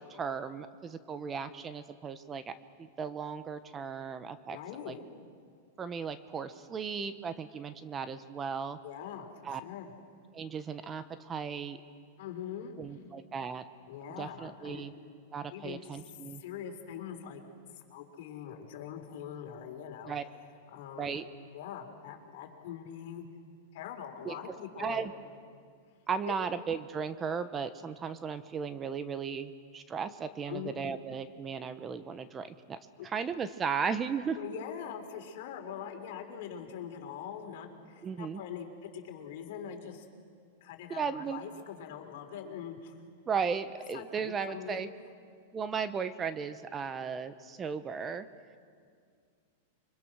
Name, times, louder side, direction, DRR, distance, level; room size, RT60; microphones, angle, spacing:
voice 1, 0.0-4.6 4.9-5.0 5.8-8.8 9.4-9.6 10.3-11.8 12.8-13.6 14.2-14.9 15.3-16.4 20.1-20.2 21.0-21.3 24.2-25.1 26.1-32.8 33.0-34.4 38.0-38.4 40.9-41.4 43.3-44.9 45.5-48.3, right 6 dB, 20° right, 12 dB, 1.0 m, -36 dB
voice 2, 4.5-5.1 8.8-9.9 12.2-12.7 13.9-14.9 15.5-16.0 16.3-17.4 17.7-20.2 20.7-21.2 21.5-23.2 23.7-25.1 26.2-26.3 30.5-30.8 33.0-33.1 34.4-40.1 40.6-43.0 43.9-44.8, left 8 dB, 60° left, 3 dB, 3.9 m, -43 dB
29.5 x 24.0 x 6.2 m, 2.1 s
hypercardioid pair, 135°, 0 cm